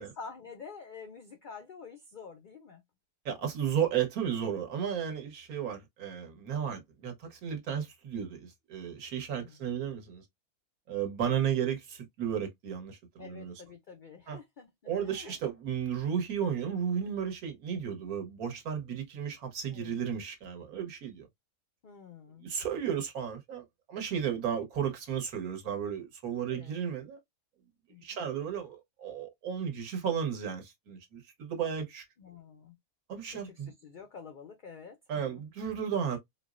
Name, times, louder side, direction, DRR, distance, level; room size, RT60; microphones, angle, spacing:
voice 1, 0.0-2.8 9.4-9.7 13.2-15.4 19.7-20.0 21.8-22.5 24.3-24.4 26.5-26.8 27.9-28.2 32.2-32.8 33.3-35.4, left 5 dB, 90° left, 0.4 m, -48 dB
voice 2, 3.2-10.2 10.9-13.5 14.3-14.4 14.9-21.3 22.4-27.2 28.0-32.0 33.1-33.7 35.1-36.2, right 8 dB, 80° right, 1.4 m, -34 dB
4.3 x 2.0 x 2.3 m
omnidirectional pair, 1.5 m